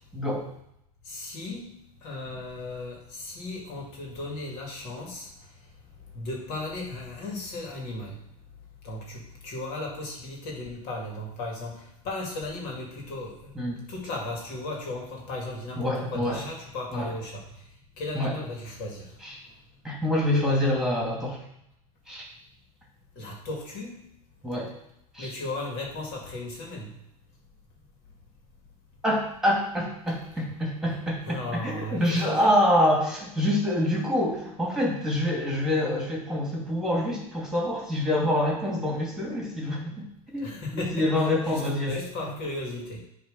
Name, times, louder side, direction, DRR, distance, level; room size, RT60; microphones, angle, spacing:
voice 1, 0.1-0.4 13.5-13.8 15.8-16.4 16.9-17.1 18.1-18.3 19.2-19.4 19.8-21.4 22.1-22.3 24.4-24.7 25.1-25.3 29.0-42.3, left 1 dB, 5° right, -3 dB, 2.5 m, -26 dB
voice 2, 1.1-5.3 6.1-8.2 8.8-13.3 13.9-17.4 18.0-19.1 23.2-24.0 25.2-26.9 30.9-31.0 31.2-32.5 40.4-41.6 41.9-43.0, left 2 dB, 55° left, -1 dB, 2.4 m, -36 dB
7.9 x 3.2 x 5.5 m, 0.79 s
hypercardioid pair, 100°, 19 cm